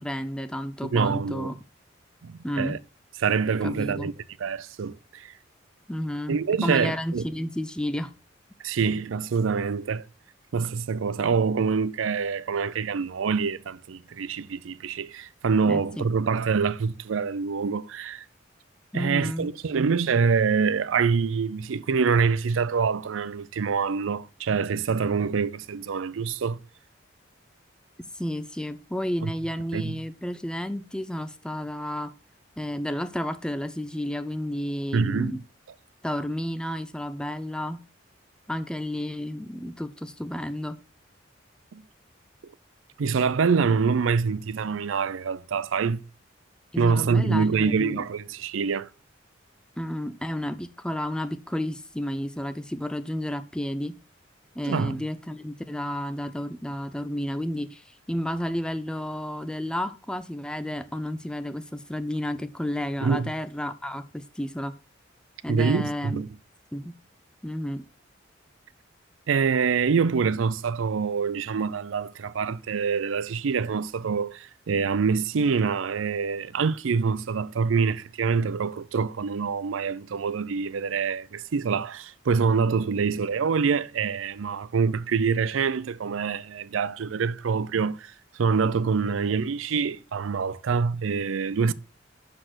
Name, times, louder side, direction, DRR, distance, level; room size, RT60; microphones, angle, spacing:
voice 1, 0.0-1.6 2.4-2.8 3.6-4.1 5.9-8.1 15.7-16.1 18.9-19.5 28.1-32.1 32.6-35.4 36.0-37.8 38.5-40.8 46.7-48.0 49.8-54.0 54.6-64.7 65.4-66.2 66.7-67.0 67.4-67.8, equal, 5° left, 0.4 m, -31 dB
voice 2, 0.9-1.5 2.2-2.8 3.2-4.1 4.4-5.3 6.3-7.2 8.6-10.1 10.5-18.2 18.9-26.6 29.2-29.3 29.7-30.0 34.9-35.4 41.7-41.8 43.0-46.0 46.8-48.9 54.6-55.0 63.0-63.3 65.5-66.3 69.3-91.7, right 5 dB, 85° right, 0.5 m, -25 dB
6.5 x 6.2 x 6.1 m
head